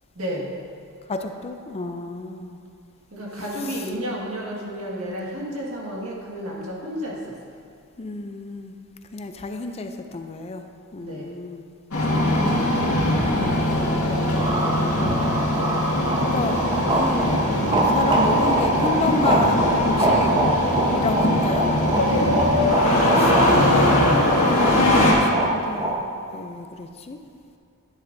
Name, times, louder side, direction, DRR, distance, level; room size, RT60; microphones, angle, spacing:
voice 1, 0.1-0.5 3.1-7.3 11.0-11.4 22.0-22.3, equal, 70° right, -4 dB, 1.9 m, -31 dB
voice 2, 1.1-2.6 8.0-8.8 9.1-10.6 10.9-11.6 13.4-14.0 16.3-20.4 20.9-21.7 23.1-23.7 24.1-26.0 26.3-27.2, left 3 dB, 30° left, 6 dB, 0.4 m, -30 dB
Engine starting, 11.9-25.1, left 1 dB, 75° left, 2.0 m, -21 dB
sound 1, 14.3-25.9, right 1 dB, 20° right, 1.0 m, -24 dB
10.5 x 10.0 x 2.7 m, 2.4 s
head